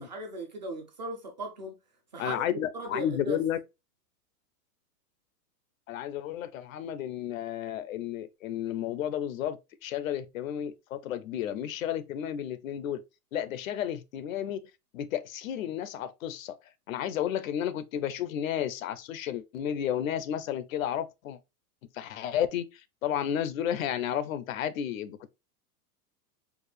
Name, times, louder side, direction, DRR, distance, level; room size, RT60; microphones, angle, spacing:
voice 1, 0.0-1.7 2.1-3.4, right 1 dB, 30° right, 0.4 m, -38 dB
voice 2, 2.2-3.6 5.9-13.0 13.3-14.6 14.9-16.6 16.9-21.4 21.9-25.3, left 10 dB, 60° left, 0.5 m, -32 dB
4.6 x 2.4 x 3.2 m
supercardioid pair, 175°, 48 cm